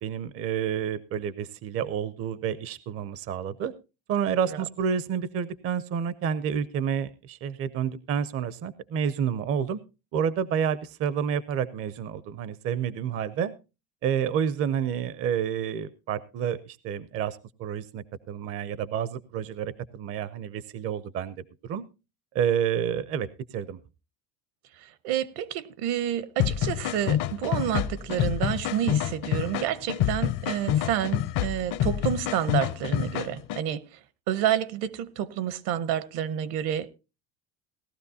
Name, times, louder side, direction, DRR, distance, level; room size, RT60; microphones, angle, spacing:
voice 1, 0.0-3.7 4.1-9.8 10.1-13.5 14.0-21.9 22.3-23.3 23.5-23.8, right 8 dB, 35° right, 0.5 m, -29 dB
voice 2, 25.0-33.8 34.3-36.9, right 10 dB, 65° right, 0.9 m, -29 dB
sound 1, 26.4-33.6, left 11 dB, 50° left, 0.7 m, -27 dB
18.0 x 12.5 x 2.7 m
cardioid pair, 140°, 41 cm